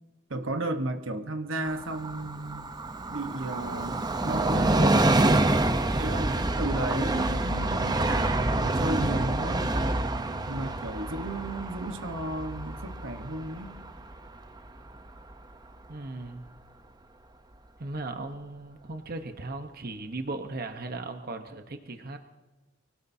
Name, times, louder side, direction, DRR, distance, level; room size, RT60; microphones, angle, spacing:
voice 1, 0.3-2.7 3.1-5.0 6.0-9.8 10.5-13.8, right 2 dB, 70° right, 7 dB, 1.2 m, -34 dB
Train, 1.7-15.0 15.3-15.4, right 2 dB, 20° right, 0.7 m, -27 dB
voice 2, 15.9-16.5 17.8-22.2, right 2 dB, 50° right, 6 dB, 1.0 m, -37 dB
24.5 x 18.0 x 2.7 m, 1.2 s
head